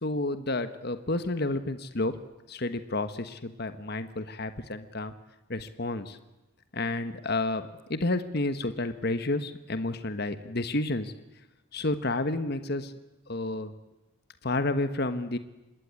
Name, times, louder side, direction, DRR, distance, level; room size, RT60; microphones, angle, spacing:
voice 1, 0.0-2.2 2.5-5.1 5.5-6.2 6.7-11.1 11.7-12.9 13.3-13.7 14.4-15.4, left 2 dB, 50° left, 11 dB, 1.4 m, -30 dB
26.5 x 20.5 x 9.8 m, 1.0 s
head